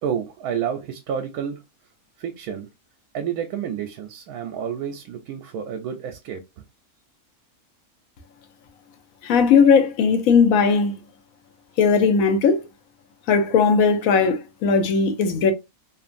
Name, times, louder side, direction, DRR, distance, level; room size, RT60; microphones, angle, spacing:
voice 1, 0.0-1.6 2.2-2.7 3.1-6.4, right 8 dB, 80° right, 1.0 m, -29 dB
voice 2, 9.2-10.9 11.8-12.6 13.3-15.5, left 5 dB, 75° left, 1.0 m, -18 dB
2.9 x 2.5 x 2.5 m
omnidirectional pair, 1.5 m